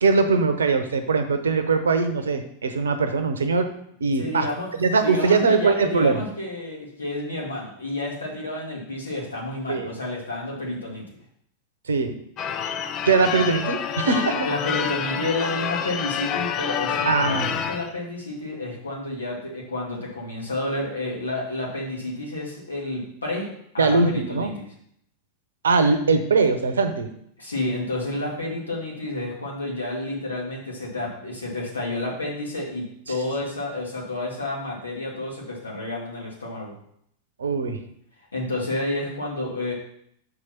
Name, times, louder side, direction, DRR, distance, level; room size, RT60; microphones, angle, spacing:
voice 1, 0.0-3.7 4.0-4.5 4.8-6.2 9.7-9.9 11.9-12.2 13.0-14.5 17.1-17.5 23.8-24.5 25.6-27.1 37.4-37.8, right 4 dB, 70° right, 8 dB, 0.9 m, -21 dB
voice 2, 4.2-4.7 5.0-11.0 14.4-23.5 23.7-24.7 27.4-36.8 38.3-39.7, left 2 dB, 75° left, -2 dB, 2.3 m, -30 dB
Church bell / Car / Alarm, 12.4-17.9, left 8 dB, 35° left, 0.6 m, -28 dB
6.4 x 5.0 x 5.8 m, 0.69 s
figure-of-eight pair, 90°, 0 cm